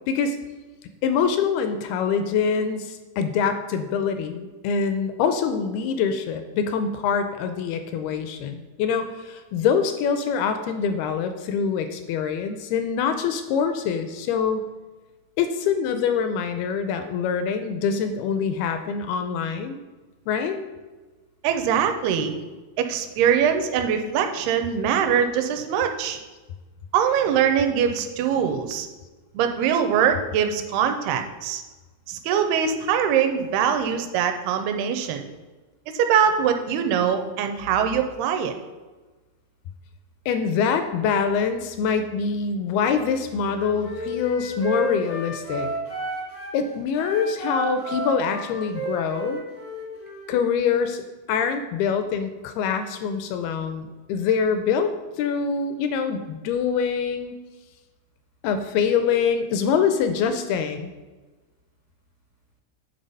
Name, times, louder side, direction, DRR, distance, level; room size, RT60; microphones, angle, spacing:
voice 1, 1.0-14.6 15.4-19.8 20.3-20.6 40.3-45.7 46.5-49.4 50.3-51.0 51.3-57.3 58.4-60.9, left 6 dB, 80° left, 8 dB, 2.3 m, -24 dB
voice 2, 21.4-22.3 22.8-26.2 26.9-28.9 29.3-31.6 32.1-35.2 35.9-38.5, right 8 dB, 80° right, 7 dB, 2.5 m, -22 dB
Wind instrument woodwind instrument, 43.5-46.6 46.9-50.3, right 1 dB, 65° left, 0.3 m, -32 dB
10.5 x 3.7 x 5.4 m, 1.2 s
omnidirectional pair, 4.9 m